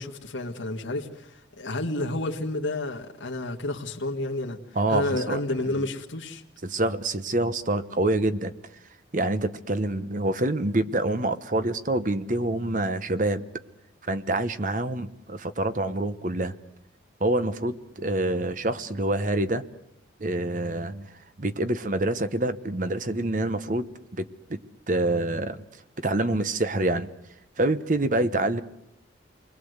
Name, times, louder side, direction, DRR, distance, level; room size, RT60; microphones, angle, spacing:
voice 1, 0.0-4.6 4.9-6.4, left 2 dB, 85° left, 1 dB, 1.9 m, -30 dB
voice 2, 4.7-5.4 6.6-8.5 9.1-13.5 14.0-16.6 17.2-19.6 20.2-23.9 24.1-24.6 24.9-25.6 26.0-27.1 27.6-28.6, right 2 dB, 40° right, 11 dB, 1.0 m, -26 dB
29.0 x 21.5 x 8.1 m, 0.82 s
head